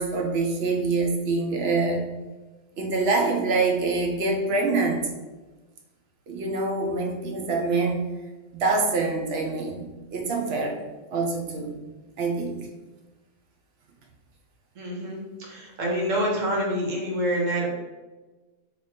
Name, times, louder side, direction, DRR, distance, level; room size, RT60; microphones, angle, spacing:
voice 1, 0.0-2.0 2.8-5.1 6.3-8.0 8.5-10.8 11.1-11.7 12.2-12.7, right 3 dB, 60° right, 1 dB, 0.8 m, -25 dB
voice 2, 14.8-17.7, equal, 75° right, -2 dB, 1.3 m, -27 dB
3.0 x 2.5 x 4.2 m, 1.2 s
omnidirectional pair, 1.3 m